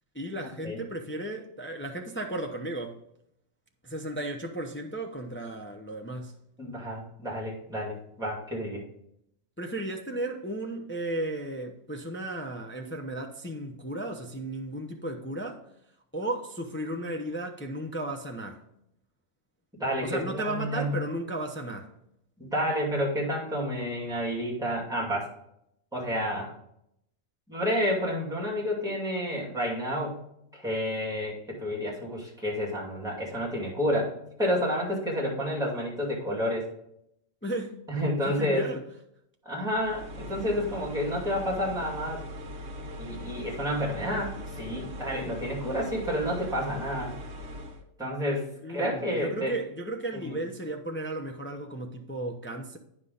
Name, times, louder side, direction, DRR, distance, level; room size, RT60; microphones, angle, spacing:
voice 1, 0.1-3.0 3.8-6.4 9.6-15.7 16.1-18.6 20.0-21.9 37.4-37.8 38.2-38.8 48.6-52.8, right 1 dB, 15° left, 0.4 m, -35 dB
voice 2, 6.6-8.8 19.8-20.9 22.4-25.3 25.9-26.5 27.5-30.2 30.5-34.1 34.4-36.7 37.9-38.7 39.4-42.3 43.0-47.2 48.0-49.5 50.1-50.4, equal, 5° right, 2.3 m, -30 dB
sound 1, 39.7-47.8, left 1 dB, 60° right, 1.3 m, -40 dB
9.5 x 5.6 x 3.9 m
omnidirectional pair, 1.4 m